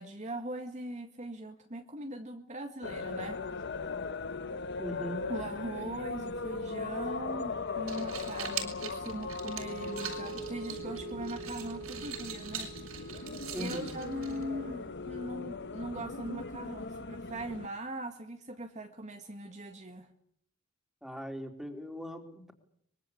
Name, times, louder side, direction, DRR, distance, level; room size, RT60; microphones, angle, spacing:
voice 1, 0.0-3.5 5.3-12.7 13.1-20.1, right 1 dB, 35° right, 4 dB, 2.0 m, -41 dB
sound 1, 2.8-17.7, left 4 dB, 55° left, 1.2 m, -39 dB
voice 2, 4.8-5.3 13.5-13.9 21.0-22.5, equal, ahead, 4 dB, 3.9 m, -39 dB
sound 2, 7.7-14.7, right 8 dB, 80° right, 6.6 m, -43 dB
Wind instrument woodwind instrument, 9.6-14.9, right 5 dB, 60° right, 1.0 m, -46 dB
24.5 x 23.5 x 8.5 m, 0.67 s
head